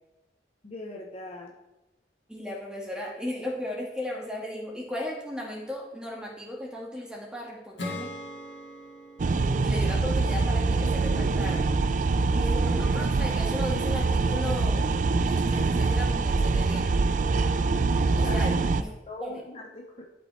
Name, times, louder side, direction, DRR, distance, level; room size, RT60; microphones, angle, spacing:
voice 1, 0.6-1.5 18.1-18.4 18.8-20.1, left 2 dB, 35° left, 0 dB, 0.7 m, -41 dB
voice 2, 2.3-8.1 9.6-11.6 12.3-14.8 15.2-16.9 18.1-18.9 19.2-19.4, left 1 dB, 5° right, -3 dB, 1.7 m, -36 dB
Acoustic guitar / Strum, 7.8-11.2, left 1 dB, 80° left, 1.8 m, -41 dB
sound 1, 9.2-18.8, right 3 dB, 45° right, 0.3 m, -24 dB
11.5 x 5.3 x 3.2 m, 0.98 s
head